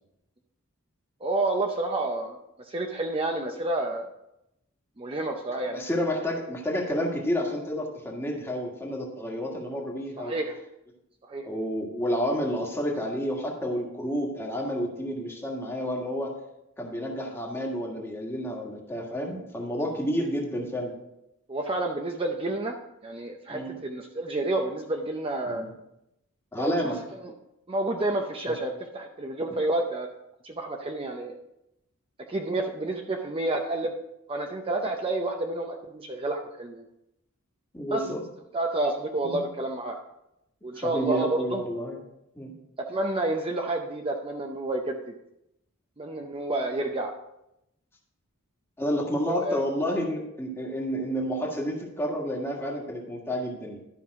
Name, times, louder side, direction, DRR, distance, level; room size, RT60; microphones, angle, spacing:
voice 1, 1.2-4.1 5.0-5.8 10.2-10.6 11.2-11.4 21.5-22.7 23.0-25.7 26.6-26.9 27.2-27.3 27.7-30.1 30.4-31.4 32.3-33.9 34.3-36.8 37.9-38.1 38.5-40.0 40.6-41.6 42.8-45.1 46.0-47.1 49.2-49.6, right 2 dB, 25° right, 2 dB, 0.6 m, -29 dB
voice 2, 5.7-10.3 11.4-16.3 16.8-20.9 23.5-23.8 25.4-25.7 26.5-27.0 28.5-28.6 37.7-38.2 39.2-39.4 40.7-42.0 42.3-42.5 48.8-53.8, equal, 10° left, -1 dB, 1.6 m, -30 dB
12.0 x 5.4 x 4.7 m, 0.85 s
head